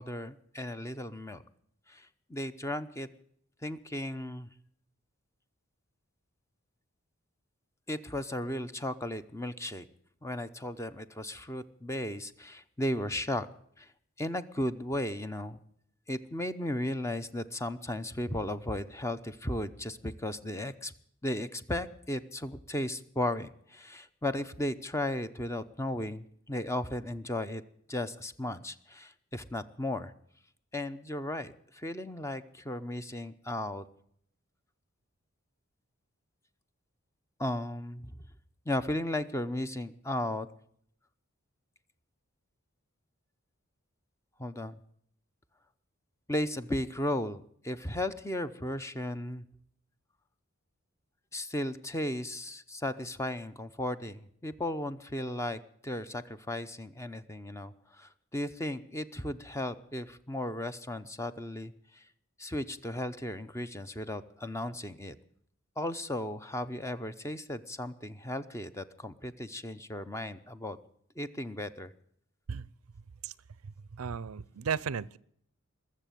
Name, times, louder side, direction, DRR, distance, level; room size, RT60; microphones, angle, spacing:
voice 1, 0.0-1.4 1.9-3.1 3.6-4.5 7.9-9.9 10.2-13.5 13.8-13.9 14.2-15.6 16.1-20.9 21.2-27.6 27.9-30.1 30.7-33.8 37.4-38.2 38.7-40.5 44.4-44.8 46.3-49.4 51.3-62.0 62.4-65.2 65.8-70.8 71.2-71.9, left 1 dB, 15° left, 12 dB, 0.7 m, -35 dB
voice 2, 73.9-75.2, right 6 dB, 90° right, 22 dB, 0.6 m, -34 dB
21.0 x 7.4 x 9.2 m, 0.67 s
head